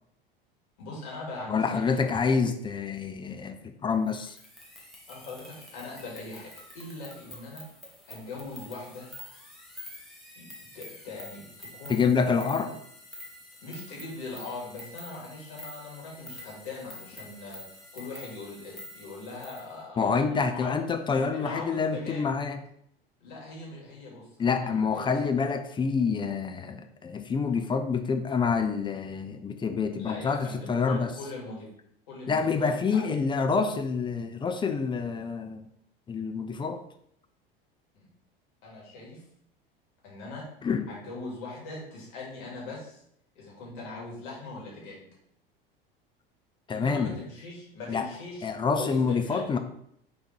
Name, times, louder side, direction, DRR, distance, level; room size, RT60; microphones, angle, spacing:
voice 1, 0.8-2.0 5.1-7.6 8.1-9.1 10.3-12.0 12.5-12.7 13.6-20.8 21.1-22.3 23.2-25.2 30.0-31.7 32.1-33.0 37.9-38.1 38.6-39.2 40.0-40.4 40.9-43.0 43.3-45.1 46.7-48.5 48.8-49.6, left 3 dB, 55° left, -4 dB, 2.7 m, -41 dB
voice 2, 1.5-4.4 11.9-12.7 20.0-22.6 24.4-31.1 32.3-35.7 36.1-36.8 40.6-40.9 46.7-47.2 47.9-48.1 48.4-49.6, left 5 dB, 15° left, 6 dB, 0.6 m, -27 dB
sound 1, 4.1-19.7, left 1 dB, ahead, 1.8 m, -47 dB
6.5 x 3.9 x 4.4 m, 0.72 s
figure-of-eight pair, 75°, 30 cm